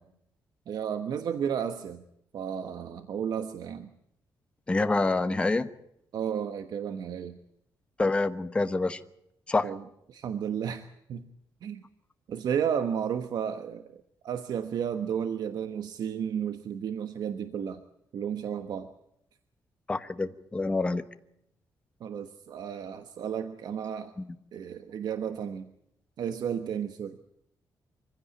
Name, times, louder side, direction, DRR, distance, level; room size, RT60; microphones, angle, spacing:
voice 1, 0.7-2.0 2.3-3.9 6.1-7.4 9.6-9.8 10.1-10.8 11.1-11.3 11.6-11.8 12.3-17.8 18.1-18.9 22.0-24.1 24.5-25.7 26.2-27.2, right 8 dB, 65° right, 9 dB, 1.3 m, -33 dB
voice 2, 4.7-5.7 8.0-9.0 9.5-9.7 19.9-21.1 24.2-24.3, left 3 dB, 15° left, 10 dB, 1.1 m, -27 dB
24.5 x 16.0 x 8.4 m, 0.78 s
wide cardioid pair, 175°, 8 cm